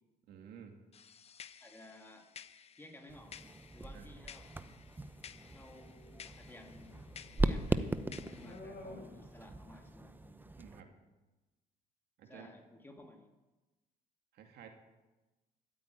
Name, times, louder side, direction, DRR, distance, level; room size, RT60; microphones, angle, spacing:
voice 1, 0.3-0.8 3.9-4.1 10.6-10.9 12.2-12.5 14.3-14.7, right 8 dB, 70° right, 4 dB, 2.4 m, -53 dB
sound 1, 0.9-8.6, left 7 dB, 40° left, 0.7 m, -55 dB
voice 2, 1.6-2.3 2.8-3.3 3.7-4.5 5.5-7.0 7.4-10.5 12.3-13.3, left 1 dB, 10° left, 3 dB, 2.0 m, -55 dB
sound 2, 3.1-10.8, right 2 dB, 10° right, 0.8 m, -39 dB
sound 3, 4.4-10.2, left 2 dB, 60° left, 5.3 m, -54 dB
13.0 x 8.8 x 9.2 m, 1.1 s
cardioid pair, 110°, 17 cm